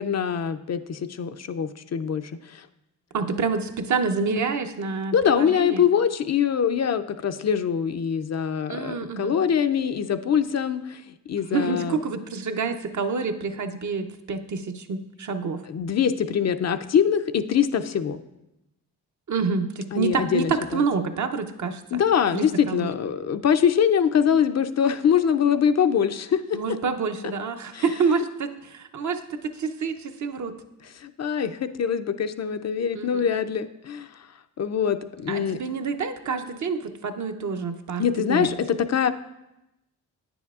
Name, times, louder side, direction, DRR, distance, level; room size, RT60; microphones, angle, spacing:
voice 1, 0.0-2.7 5.1-11.0 11.3-12.0 15.7-18.2 19.9-20.8 21.9-26.6 27.7-27.8 30.8-34.1 34.6-35.6 38.0-39.1, left 8 dB, 45° left, 9 dB, 0.4 m, -23 dB
voice 2, 3.1-5.9 8.7-9.3 11.5-15.6 19.3-22.0 22.3-22.9 26.5-30.6 32.9-33.2 35.3-38.5, right 5 dB, 50° right, 7 dB, 0.7 m, -28 dB
9.1 x 6.9 x 2.4 m, 0.92 s
cardioid pair, 60°, 38 cm